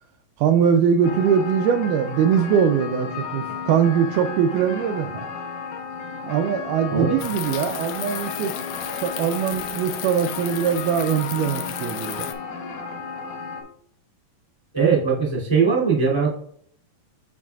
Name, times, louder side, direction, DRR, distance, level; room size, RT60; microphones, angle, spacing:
voice 1, 0.4-5.3 6.2-8.5 9.0-12.3, right 7 dB, 80° right, 5 dB, 1.9 m, -22 dB
sound 1, 1.0-13.6, left 5 dB, 65° left, 1.7 m, -33 dB
sound 2, 7.2-12.3, left 11 dB, 80° left, 1.6 m, -34 dB
voice 2, 14.7-16.3, right 5 dB, 5° left, -5 dB, 1.6 m, -20 dB
7.2 x 6.5 x 2.3 m, 0.63 s
omnidirectional pair, 4.0 m